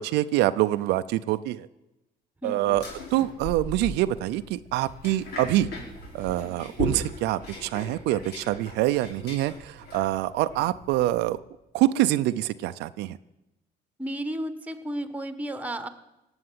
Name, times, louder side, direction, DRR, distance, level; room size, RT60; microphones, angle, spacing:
voice 1, 0.0-1.7 2.4-2.8 3.1-5.7 6.1-11.4 11.7-13.2, right 15 dB, 90° right, 12 dB, 0.6 m, -25 dB
voice 2, 2.4-2.8 6.4-6.7 14.0-15.9, right 1 dB, 10° right, 10 dB, 1.4 m, -33 dB
sound 1, 2.7-11.3, left 1 dB, 70° left, 5.1 m, -38 dB
17.5 x 8.0 x 9.6 m, 0.95 s
cardioid pair, 110°, 17 cm